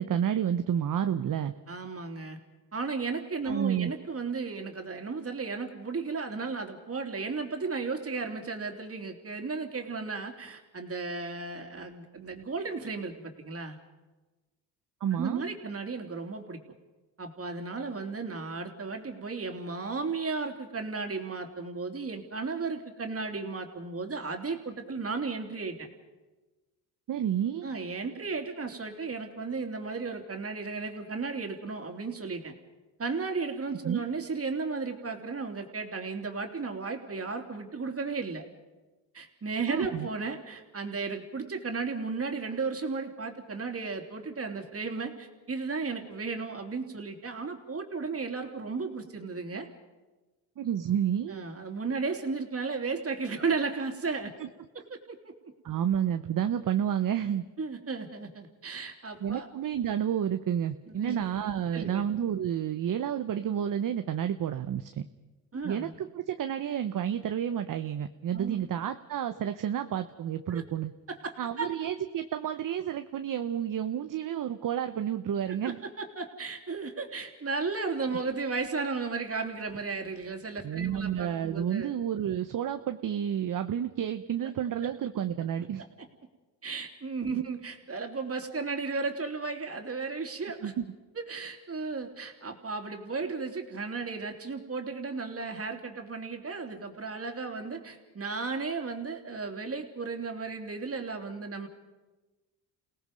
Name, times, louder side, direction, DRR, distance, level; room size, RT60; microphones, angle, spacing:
voice 1, 0.0-1.5 3.5-3.9 15.0-15.4 27.1-27.7 33.8-34.0 39.7-40.1 50.6-51.4 54.4-54.5 55.6-57.4 59.2-65.1 65.6-70.9 71.4-75.8 80.6-85.8 87.3-87.4 90.6-90.8, right 9 dB, 55° right, 8 dB, 1.0 m, -30 dB
voice 2, 1.7-2.4 2.7-13.8 15.1-16.6 17.2-25.9 27.6-32.5 33.0-38.4 39.1-49.7 51.3-54.3 54.9-55.3 57.6-59.5 60.9-61.2 61.7-62.0 65.5-65.9 68.3-68.7 70.5-70.6 71.1-71.7 75.5-81.9 86.6-90.7 91.1-101.7, right 4 dB, 35° right, 4 dB, 3.2 m, -34 dB
29.0 x 18.0 x 5.3 m, 1.2 s
supercardioid pair, 75°, 40 cm